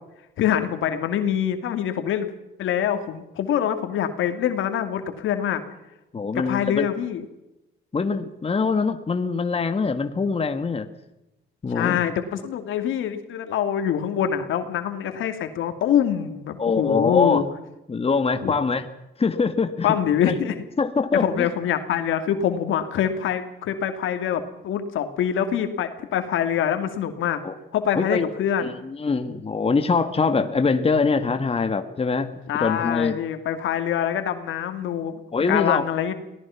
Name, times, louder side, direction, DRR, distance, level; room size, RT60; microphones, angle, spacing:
voice 1, 0.4-2.3 2.6-5.6 6.5-7.3 11.7-17.4 18.4-18.5 19.8-20.5 21.2-27.4 27.7-28.8 32.5-35.2 35.5-36.1, left 9 dB, 80° left, 8 dB, 2.6 m, -25 dB
voice 2, 6.1-6.9 7.9-10.9 11.6-12.0 16.6-17.4 17.9-18.8 19.2-19.9 20.2-20.3 20.8-21.5 27.4-27.5 27.9-28.3 28.6-33.2 35.3-35.8, left 4 dB, 30° left, 8 dB, 1.7 m, -23 dB
24.0 x 18.5 x 5.9 m, 0.93 s
cardioid pair, 90°, 20 cm